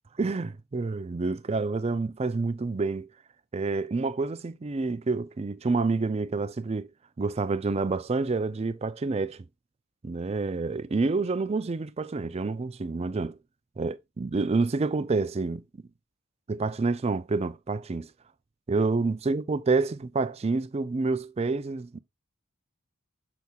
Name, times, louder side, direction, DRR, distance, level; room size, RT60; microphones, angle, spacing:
voice 1, 0.2-3.1 3.5-6.9 7.2-9.4 10.0-13.4 13.8-15.6 16.5-18.1 18.7-22.0, right 3 dB, 30° right, 0.4 m, -28 dB
6.8 x 6.1 x 2.3 m
head